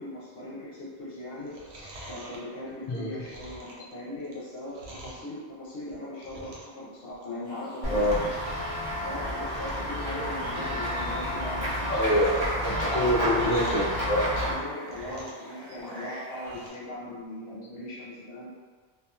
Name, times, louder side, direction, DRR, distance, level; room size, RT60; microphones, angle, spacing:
voice 1, 0.0-1.6 2.1-8.4 9.0-12.2 13.2-13.3 14.5-18.5, left 1 dB, 65° left, -7 dB, 0.9 m, -39 dB
Chewing mastication, 1.3-5.3 5.8-6.8 7.1-7.5 7.8-8.3 8.6-8.7 9.1-9.2 9.4-9.9 10.3-11.3 11.6-14.0 14.4-15.5 15.8-16.8 17.2-17.3, right 1 dB, 85° right, 0.9 m, -47 dB
sound 1, 7.4-16.7, equal, 25° left, 1.3 m, -45 dB
Run / Walk footsteps / Bell, 7.8-14.5, equal, 25° right, 0.6 m, -30 dB
voice 2, 7.9-8.3 10.1-10.2 11.9-14.5, equal, 50° left, -6 dB, 0.6 m, -26 dB
2.7 x 2.3 x 2.3 m, 1.5 s
omnidirectional pair, 1.1 m